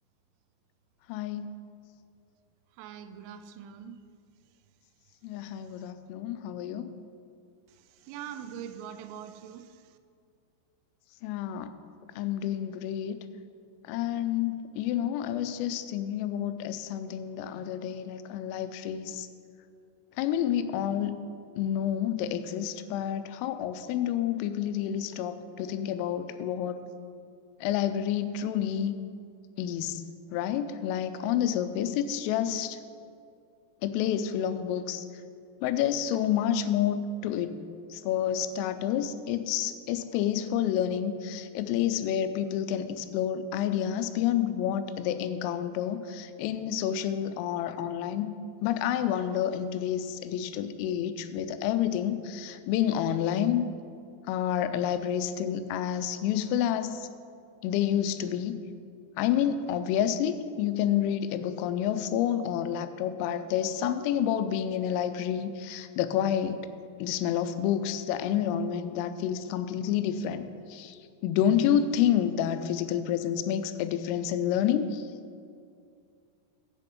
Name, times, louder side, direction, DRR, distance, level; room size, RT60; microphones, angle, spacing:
voice 1, 1.1-1.5 5.2-6.9 11.2-11.7 12.2-13.2 13.8-19.3 20.2-21.2 21.6-26.8 27.6-28.9 29.6-30.0 30.3-32.8 33.8-35.0 35.6-37.6 37.9-48.3 48.6-53.6 54.3-57.1 57.6-58.6 59.2-66.7 67.0-71.0 71.2-75.0, left 10 dB, 90° left, 10 dB, 3.2 m, -29 dB
voice 2, 2.8-4.0 8.0-9.8, right 9 dB, 85° right, 10 dB, 3.1 m, -42 dB
11.0 x 8.2 x 5.3 m, 2.4 s
omnidirectional pair, 5.8 m